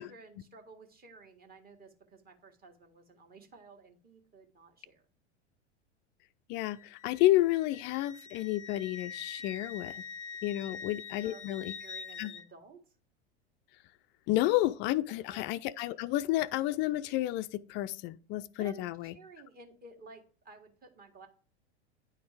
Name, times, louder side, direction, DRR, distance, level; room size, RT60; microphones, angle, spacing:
voice 1, 0.0-5.0 10.5-10.7 11.2-12.8 15.1-15.6 18.6-21.3, right 3 dB, 25° right, 1.7 m, -54 dB
voice 2, 6.5-10.0 10.4-11.7 12.2-12.3 14.3-19.1, left 15 dB, 35° left, 0.4 m, -30 dB
Wind instrument woodwind instrument, 6.7-12.4, left 6 dB, 85° left, 0.6 m, -45 dB
9.7 x 4.3 x 4.9 m
figure-of-eight pair, 85°, 34 cm